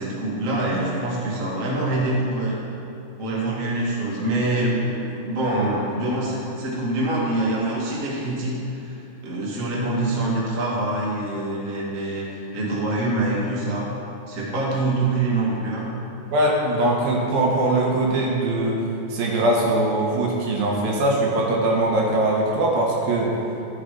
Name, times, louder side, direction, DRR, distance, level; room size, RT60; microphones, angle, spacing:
voice 1, 0.0-2.6 3.2-12.3 12.5-13.9 14.3-15.9, right 2 dB, 45° right, -5 dB, 1.0 m, -25 dB
voice 2, 16.3-18.8 19.1-23.3, right 1 dB, 65° right, -2 dB, 2.9 m, -21 dB
14.0 x 6.6 x 5.0 m, 2.7 s
omnidirectional pair, 4.9 m